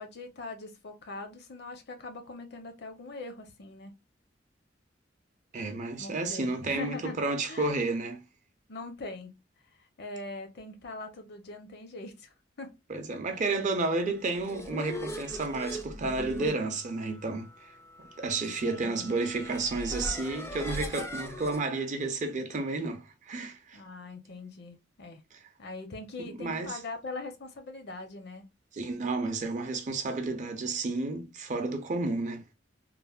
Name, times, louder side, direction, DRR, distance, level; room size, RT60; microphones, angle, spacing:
voice 1, 0.0-3.9 6.0-7.2 7.5-7.8 8.7-9.3 9.8-12.7 18.6-19.1 23.7-25.2 25.6-28.4, left 2 dB, 60° left, 0.6 m, -42 dB
voice 2, 5.5-8.2 12.9-17.7 18.0-23.8 26.2-26.8 28.7-32.4, right 3 dB, 40° right, 0.5 m, -31 dB
sound 1, 14.1-21.6, equal, 15° left, 0.4 m, -40 dB
3.1 x 2.0 x 2.2 m
head